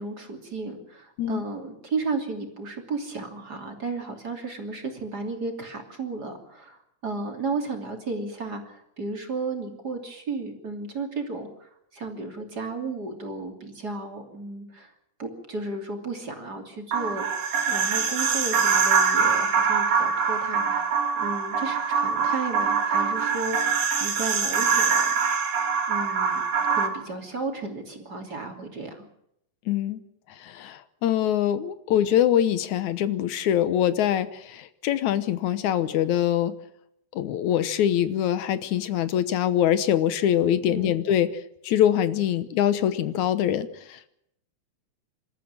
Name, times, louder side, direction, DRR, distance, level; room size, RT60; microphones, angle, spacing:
voice 1, 0.0-14.9 15.2-17.2 17.7-25.1 25.9-26.4 26.7-29.0 40.7-41.0, right 3 dB, 35° right, 4 dB, 3.2 m, -34 dB
sound 1, 16.9-26.9, right 6 dB, 90° right, 4.0 m, -24 dB
voice 2, 29.7-30.0 30.4-36.5 37.1-41.3 41.6-44.1, left 10 dB, 80° left, 14 dB, 2.4 m, -24 dB
26.5 x 13.5 x 8.9 m, 0.76 s
omnidirectional pair, 3.3 m